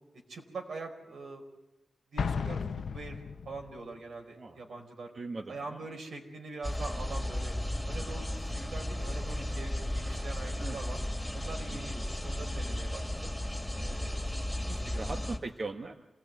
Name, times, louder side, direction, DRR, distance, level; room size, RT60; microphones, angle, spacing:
voice 1, 0.3-1.4 2.1-2.6 2.9-5.1 5.5-7.5 7.9-11.0 11.3-13.3 13.8-15.1, right 3 dB, 80° right, 3 dB, 4.7 m, -43 dB
Explosion, 2.2-3.8, left 5 dB, 85° left, 0.8 m, -34 dB
voice 2, 5.1-5.8 10.6-10.8 11.7-12.0 14.9-15.9, right 3 dB, 45° right, 4 dB, 1.3 m, -40 dB
sound 1, 6.6-15.4, left 1 dB, ahead, 2.9 m, -34 dB
28.0 x 18.5 x 9.4 m, 1.1 s
wide cardioid pair, 120°, 0 cm